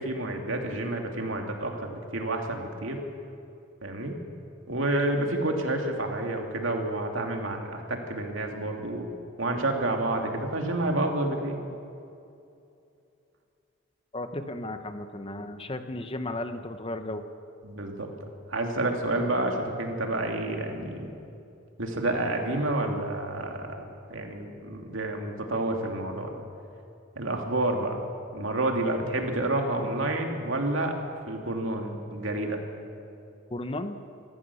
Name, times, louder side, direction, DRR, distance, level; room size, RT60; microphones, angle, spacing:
voice 1, 0.0-3.0 3.8-4.1 4.7-9.1 9.4-11.6 17.6-18.1 18.5-21.1 21.8-23.7 24.1-26.3 27.2-28.0 28.3-30.9 31.3-32.6, right 2 dB, 80° right, 2 dB, 2.6 m, -29 dB
voice 2, 14.1-17.2 33.5-34.0, left 1 dB, 30° left, 9 dB, 0.9 m, -34 dB
26.5 x 14.5 x 7.0 m, 2.6 s
head